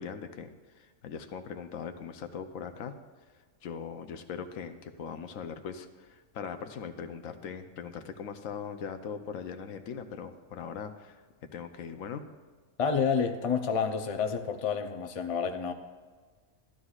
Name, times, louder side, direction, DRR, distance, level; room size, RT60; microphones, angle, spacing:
voice 1, 0.0-3.0 3.6-12.3, left 6 dB, 80° left, 7 dB, 1.1 m, -40 dB
voice 2, 12.8-15.7, left 6 dB, 40° left, 5 dB, 0.5 m, -29 dB
14.0 x 11.5 x 2.4 m, 1.4 s
omnidirectional pair, 1.4 m